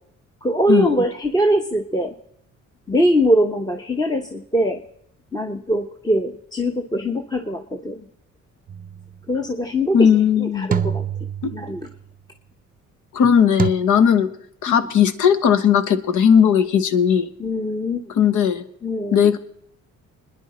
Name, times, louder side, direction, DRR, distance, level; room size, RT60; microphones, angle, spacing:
voice 1, 0.4-2.1 2.9-4.8 5.3-8.0 9.3-11.0 11.5-11.9 14.7-14.8 17.4-18.1 18.8-19.3, equal, 15° left, 4 dB, 1.0 m, -22 dB
sound 1, 8.7-9.1 10.7-11.9 13.6-13.7, right 7 dB, 30° right, 0.6 m, -25 dB
voice 2, 9.9-10.7 11.4-11.5 13.1-14.3 14.6-17.3 18.2-18.6 19.1-19.4, left 8 dB, 80° left, 11 dB, 1.2 m, -17 dB
25.0 x 10.0 x 4.3 m, 0.73 s
cardioid pair, 90°, 30 cm